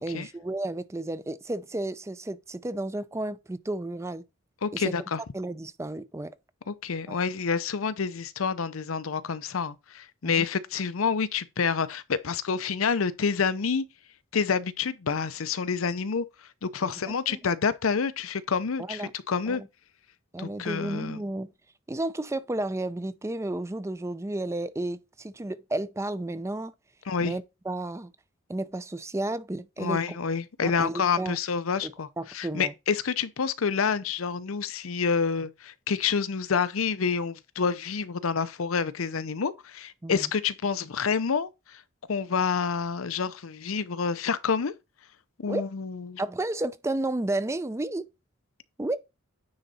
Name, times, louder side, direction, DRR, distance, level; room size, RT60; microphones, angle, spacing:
voice 1, 0.0-4.2 4.7-4.9 5.3-6.4 7.1-7.2 10.2-10.5 16.8-16.9 17.3-17.4 18.9-19.1 19.5-19.7 20.3-21.5 21.9-26.7 27.2-28.1 28.5-30.2 30.6-31.4 31.8-31.9 32.2-32.7 40.0-40.3 45.5-45.6 46.2-48.1 48.8-49.0, right 2 dB, 15° right, 0.4 m, -32 dB
voice 2, 4.6-5.2 6.7-13.9 14.3-16.3 16.6-19.6 20.4-21.2 27.1-27.3 29.8-32.1 32.3-41.8 42.1-44.7 45.4-46.2, left 5 dB, 85° left, 0.6 m, -28 dB
9.6 x 4.0 x 4.1 m
head